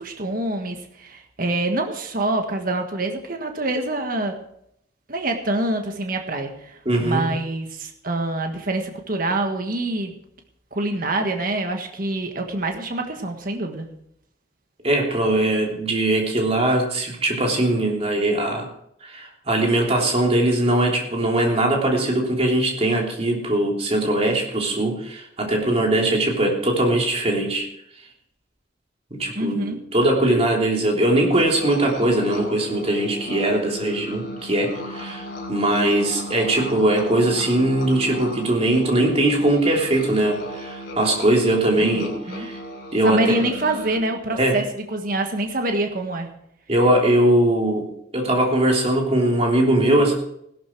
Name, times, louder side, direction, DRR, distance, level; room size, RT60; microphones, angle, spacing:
voice 1, 0.0-4.4 5.1-10.1 10.7-13.9 29.3-29.8 41.8-42.5 43.0-46.3, right 2 dB, 50° right, 4 dB, 1.5 m, -26 dB
voice 2, 6.8-7.3 14.8-18.7 19.0-27.7 29.1-42.1 42.4-42.6 42.9-43.2 44.4-44.6 46.7-47.8 48.1-50.1, right 1 dB, 35° right, 0 dB, 3.2 m, -20 dB
sound 1, 31.3-44.0, equal, 60° left, 3.8 m, -35 dB
16.5 x 12.0 x 4.6 m, 0.73 s
head